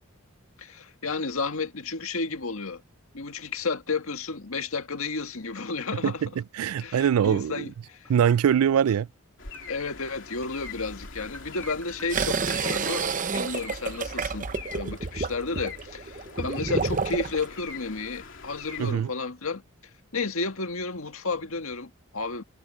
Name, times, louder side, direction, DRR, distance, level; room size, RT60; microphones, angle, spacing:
voice 1, 0.6-2.8 3.1-6.2 6.8-8.1 9.7-13.1 13.3-14.5 14.7-19.6 20.1-22.4, left 4 dB, 75° left, 1.8 m, -32 dB
voice 2, 6.0-7.7 8.1-9.1 18.8-19.1, right 8 dB, 85° right, 0.3 m, -23 dB
sound 1, 7.7-9.0 9.5-9.7 10.1-14.5, left 1 dB, 10° left, 3.9 m, -49 dB
sound 2, 9.4-18.9, left 5 dB, 60° left, 3.2 m, -43 dB
sound 3, 12.1-17.5, right 5 dB, 35° right, 0.7 m, -29 dB
head